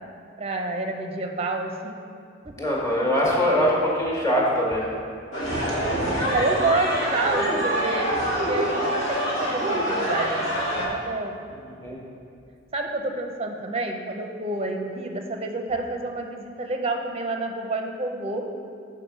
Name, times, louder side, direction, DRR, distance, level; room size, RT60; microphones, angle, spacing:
voice 1, 0.4-1.9 2.4-2.6 6.2-8.2 8.5-11.4 12.7-18.4, right 2 dB, 30° right, 4 dB, 0.6 m, -29 dB
voice 2, 2.6-4.9 11.8-12.0, equal, 15° left, -4 dB, 1.4 m, -22 dB
sound 1, 5.3-10.9, equal, 80° left, 1.7 m, -25 dB
6.3 x 4.7 x 6.1 m, 2.3 s
head